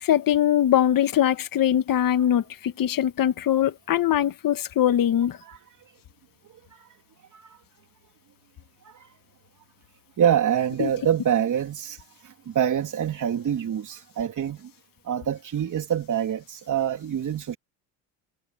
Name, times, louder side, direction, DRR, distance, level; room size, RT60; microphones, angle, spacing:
voice 1, 0.0-5.4 10.8-10.9, left 11 dB, 50° left, 1.7 m, -22 dB
voice 2, 10.2-12.0 12.2-14.7 15.1-17.6, right 9 dB, 45° right, 3.5 m, -26 dB
cardioid pair, 100°, 42 cm